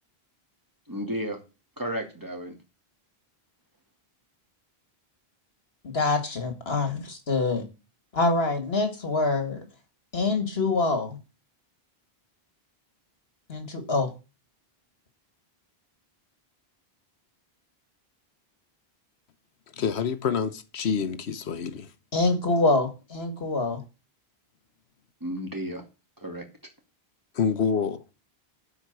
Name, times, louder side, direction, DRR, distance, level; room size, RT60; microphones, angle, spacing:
voice 1, 0.9-1.4 1.8-2.6 25.2-25.8 26.2-26.4, equal, 20° right, 2.5 m, -32 dB
voice 2, 5.8-7.6 8.1-9.6 10.1-11.2 13.5-14.1 22.1-23.8, left 3 dB, 70° left, 2.3 m, -25 dB
voice 3, 19.7-21.9 27.3-28.0, left 6 dB, 85° left, 1.2 m, -27 dB
12.0 x 4.9 x 8.0 m
omnidirectional pair, 1.1 m